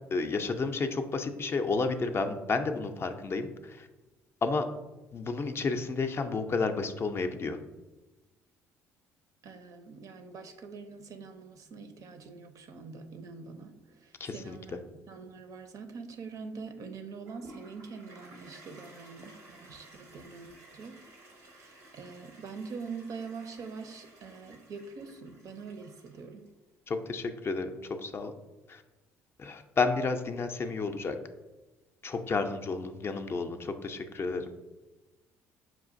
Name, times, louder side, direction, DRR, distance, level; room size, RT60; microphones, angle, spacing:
voice 1, 0.1-3.9 4.4-4.7 5.1-7.6 14.2-14.6 26.9-27.7 28.0-28.3 28.7-28.8 29.4-31.2 32.0-34.5, left 4 dB, 35° left, 7 dB, 0.4 m, -31 dB
voice 2, 9.4-21.0 21.5-26.5, right 5 dB, 55° right, 7 dB, 0.5 m, -44 dB
Toilet flush, 17.3-26.5, right 1 dB, 85° right, 0.8 m, -54 dB
5.6 x 2.4 x 2.5 m, 1.1 s
hypercardioid pair, 60°, 7 cm